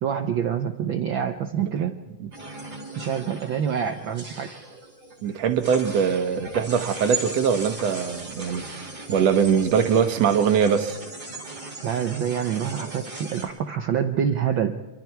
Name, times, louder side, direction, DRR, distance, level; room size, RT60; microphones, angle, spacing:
voice 1, 0.0-2.0 3.0-4.5 11.8-14.8, right 8 dB, 85° right, 7 dB, 1.0 m, -26 dB
sound 1, 2.3-13.4, right 3 dB, 25° right, 5.1 m, -37 dB
voice 2, 5.2-8.8 9.1-11.0, right 7 dB, 65° right, 7 dB, 2.4 m, -22 dB
28.0 x 24.5 x 4.6 m, 1.2 s
omnidirectional pair, 3.3 m